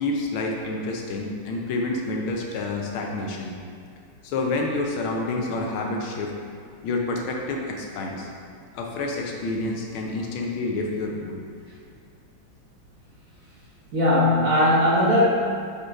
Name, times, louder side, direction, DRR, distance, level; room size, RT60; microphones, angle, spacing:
voice 1, 0.0-3.5 4.2-6.3 6.8-8.3 8.7-11.4, left 2 dB, 75° left, 0 dB, 1.5 m, -28 dB
voice 2, 13.9-15.2, left 1 dB, 50° right, -9 dB, 1.0 m, -19 dB
5.1 x 4.1 x 4.6 m, 2.3 s
omnidirectional pair, 2.4 m